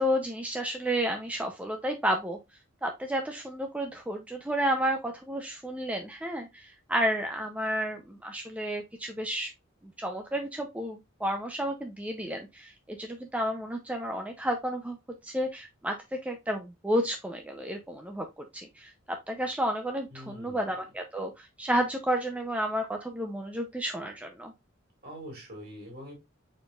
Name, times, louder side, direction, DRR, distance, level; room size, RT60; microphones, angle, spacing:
voice 1, 0.0-2.4 2.8-9.5 10.0-15.0 15.2-16.0 16.2-18.3 18.5-24.5, equal, 5° right, 3 dB, 0.5 m, -31 dB
voice 2, 20.1-20.7 25.0-26.2, equal, 50° right, 1 dB, 2.6 m, -44 dB
4.9 x 4.3 x 2.3 m, 0.21 s
head